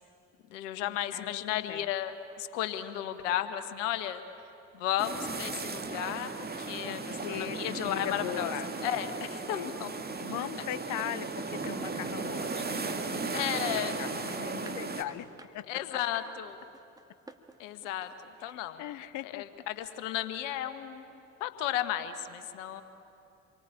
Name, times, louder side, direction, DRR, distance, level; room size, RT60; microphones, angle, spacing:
voice 1, 0.5-4.2 4.7-6.3 6.6-8.5 8.8-9.9 13.3-14.0 15.7-16.6 17.6-18.1 18.4-18.8 19.2-22.8, left 11 dB, 70° left, 11 dB, 1.5 m, -34 dB
voice 2, 1.1-1.9 6.8-8.7 9.5-9.7 10.2-13.5 13.8-15.7 18.4-19.6, left 13 dB, 50° left, 18 dB, 0.7 m, -40 dB
sound 1, 5.0-15.0, right 4 dB, 25° right, 2.1 m, -36 dB
sound 2, 11.6-18.5, right 2 dB, 10° right, 1.8 m, -52 dB
28.0 x 23.5 x 8.8 m, 2.9 s
figure-of-eight pair, 55°, 38 cm